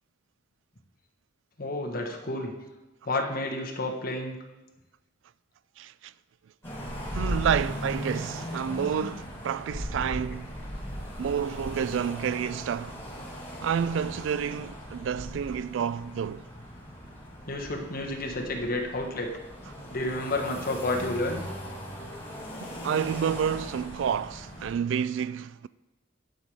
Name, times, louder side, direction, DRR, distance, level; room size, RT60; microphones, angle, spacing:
voice 1, 1.6-2.5 3.0-4.3 7.2-7.3 17.5-19.3 19.9-21.4, left 2 dB, 50° left, 1.3 m, -30 dB
voice 2, 5.8-6.1 7.1-10.5 11.2-13.0 13.6-16.4 22.6-25.7, right 7 dB, 70° right, 0.3 m, -29 dB
sound 1, 6.6-24.7, equal, 15° left, 3.1 m, -38 dB
11.0 x 4.9 x 5.3 m
head